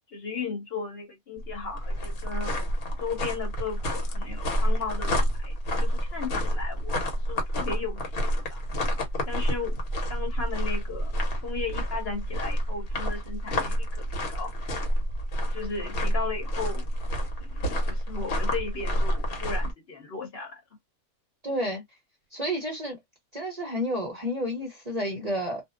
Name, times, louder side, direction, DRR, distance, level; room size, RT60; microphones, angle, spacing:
voice 1, 0.1-2.5 3.0-7.0 7.3-8.6 9.3-9.8 10.1-11.1 11.4-14.5 15.5-16.9 17.4-20.6, left 4 dB, 50° left, 1.0 m, -36 dB
sound 1, 1.4-19.7, equal, 80° left, 1.3 m, -29 dB
voice 2, 21.4-21.8 22.3-23.0 23.3-25.6, equal, 35° right, 0.7 m, -30 dB
2.7 x 2.0 x 2.3 m
omnidirectional pair, 1.5 m